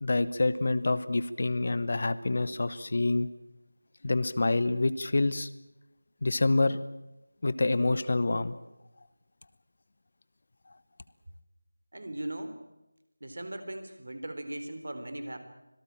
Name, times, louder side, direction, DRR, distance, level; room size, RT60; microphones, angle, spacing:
voice 1, 0.0-3.3 4.0-5.5 6.2-6.8 7.4-8.6, left 2 dB, 40° left, 15 dB, 1.0 m, -27 dB
voice 2, 11.9-12.6 13.2-15.4, right 1 dB, 55° right, 9 dB, 3.8 m, -38 dB
25.5 x 18.5 x 8.8 m, 0.97 s
figure-of-eight pair, 170°, 0 cm